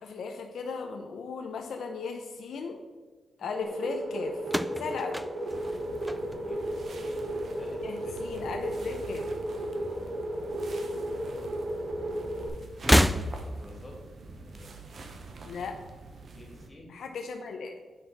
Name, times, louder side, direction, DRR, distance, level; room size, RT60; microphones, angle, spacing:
voice 1, 0.0-2.8 3.4-4.4 4.8-5.2 7.8-9.3 15.4-15.8 16.9-17.8, left 4 dB, 85° left, 4 dB, 0.7 m, -36 dB
sound 1, 3.6-12.5, right 1 dB, 85° right, 1.3 m, -34 dB
sound 2, 4.4-6.8 7.1-7.7 8.7-9.7 10.0-10.1 11.2-11.3 12.7-13.7, equal, ahead, 0.3 m, -28 dB
sound 3, 5.5-16.7, right 3 dB, 60° right, 0.9 m, -46 dB
voice 2, 6.4-7.2 7.6-8.5 10.5-11.4 13.5-14.0 14.5-14.7 16.3-16.9, left 1 dB, 25° left, -1 dB, 2.5 m, -51 dB
8.3 x 5.9 x 4.1 m, 1.4 s
cardioid pair, 85°, 0 cm